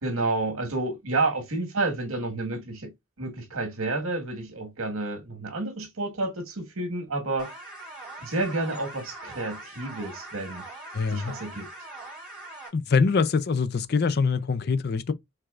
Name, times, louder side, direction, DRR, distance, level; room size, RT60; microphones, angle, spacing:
voice 1, 0.0-2.9 3.2-7.5 8.2-10.6 11.1-11.7, right 2 dB, 80° right, 1.6 m, -30 dB
sound 1, 7.4-12.7, right 2 dB, 5° right, 2.4 m, -42 dB
voice 2, 10.9-11.3 12.7-15.1, left 5 dB, 50° left, 0.4 m, -24 dB
4.7 x 3.7 x 2.4 m
head